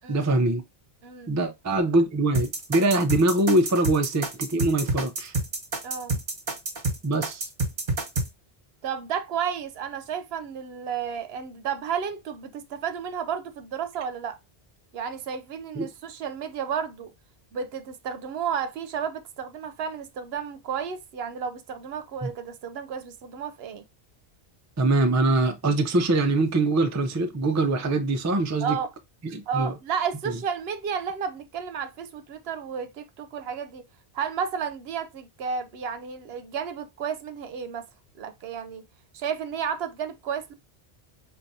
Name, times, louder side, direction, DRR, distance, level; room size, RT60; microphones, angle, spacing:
voice 1, 0.1-0.6 1.3-5.3 7.0-7.5 15.8-15.9 22.2-22.3 24.8-28.8 29.2-29.7, right 2 dB, 30° right, 0.3 m, -23 dB
voice 2, 1.0-1.4 5.8-6.2 8.8-14.4 14.9-17.1 17.5-23.8 28.6-28.9 29.5-33.8 34.1-37.9 38.2-38.8 39.1-40.5, right 7 dB, 80° right, 0.8 m, -32 dB
sound 1, 2.3-8.3, right 2 dB, 50° right, 1.2 m, -28 dB
4.6 x 2.5 x 2.6 m
omnidirectional pair, 1.0 m